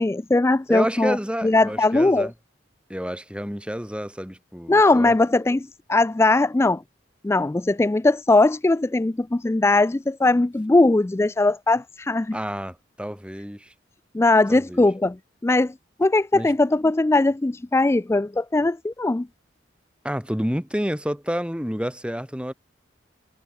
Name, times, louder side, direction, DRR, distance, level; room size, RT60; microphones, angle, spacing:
voice 1, 0.0-1.2 1.4-2.3 4.7-6.8 7.2-12.4 14.1-15.2 15.4-15.7 16.0-19.3, left 2 dB, 15° left, 0.3 m, -20 dB
voice 2, 0.7-2.3 2.9-5.2 12.3-13.7 14.5-14.8 16.3-16.5 20.0-22.5, equal, 5° right, 7.8 m, -29 dB
head